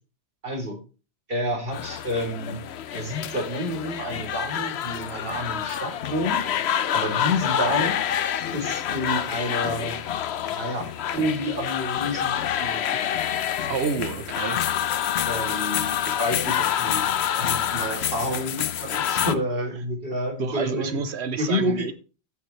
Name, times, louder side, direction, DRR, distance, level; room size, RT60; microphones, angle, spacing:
voice 1, 0.4-0.8 1.3-2.6 2.9-6.5 6.9-8.0 8.5-10.0 10.5-12.9 15.2-21.1 21.4-21.9, equal, 60° right, 3.7 m, -29 dB
sound 1, 1.7-19.3, left 10 dB, 80° left, 0.9 m, -27 dB
voice 2, 13.7-14.7 17.0-17.1 20.4-21.9, right 6 dB, 90° right, 1.2 m, -29 dB
15.0 x 7.1 x 3.2 m
omnidirectional pair, 1.1 m